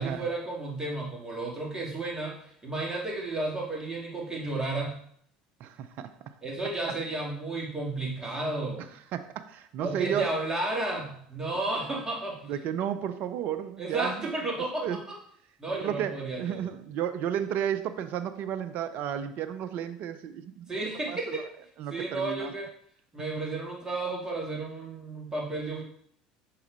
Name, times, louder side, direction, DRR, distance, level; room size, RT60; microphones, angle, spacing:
voice 1, 0.0-2.4 2.6-4.9 6.4-8.8 9.8-12.4 13.8-15.2 15.6-16.7 20.7-21.5 21.9-22.7 23.1-25.8, right 2 dB, 20° right, -2 dB, 2.2 m, -32 dB
voice 2, 5.6-6.1 9.1-10.3 12.4-14.3 14.8-15.0 15.8-20.7 21.1-21.5 21.8-22.5, right 9 dB, 55° right, 10 dB, 0.5 m, -32 dB
6.0 x 4.2 x 4.0 m, 0.65 s
hypercardioid pair, 75°, 4 cm